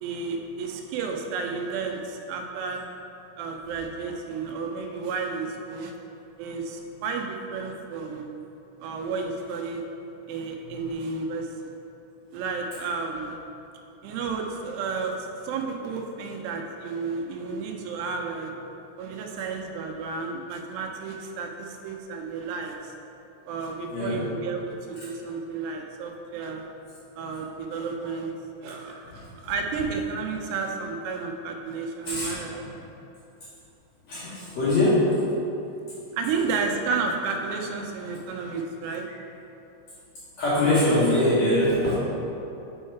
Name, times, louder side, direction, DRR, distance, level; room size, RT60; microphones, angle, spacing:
voice 1, 0.0-2.9 3.4-5.9 6.4-8.3 8.8-9.8 10.3-11.6 12.3-13.4 14.0-18.5 19.0-22.9 23.5-26.6 27.2-28.3 28.6-32.6 36.1-39.1, right 4 dB, 80° right, 2 dB, 2.6 m, -32 dB
voice 2, 32.1-32.7 34.1-35.0 39.1-39.2 40.4-41.9, left 1 dB, 65° left, -11 dB, 1.8 m, -23 dB
5.5 x 4.6 x 4.5 m, 2.8 s
omnidirectional pair, 4.9 m